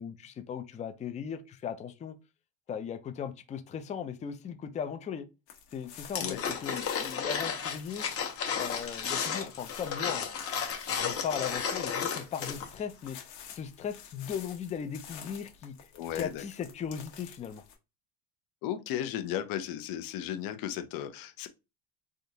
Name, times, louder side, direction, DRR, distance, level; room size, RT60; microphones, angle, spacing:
voice 1, 0.0-2.2 2.7-5.3 5.7-8.1 8.5-10.3 10.9-13.2 13.5-15.7 16.1-17.6, left 7 dB, 20° left, 0.3 m, -37 dB
sound 1, 5.5-17.8, left 8 dB, 75° left, 1.2 m, -50 dB
sound 2, 6.1-12.8 13.1-13.2, left 7 dB, 35° left, 1.0 m, -33 dB
voice 2, 15.9-16.4 18.6-21.5, left 11 dB, 60° left, 0.7 m, -35 dB
3.5 x 2.4 x 2.7 m
supercardioid pair, 115°, 39 cm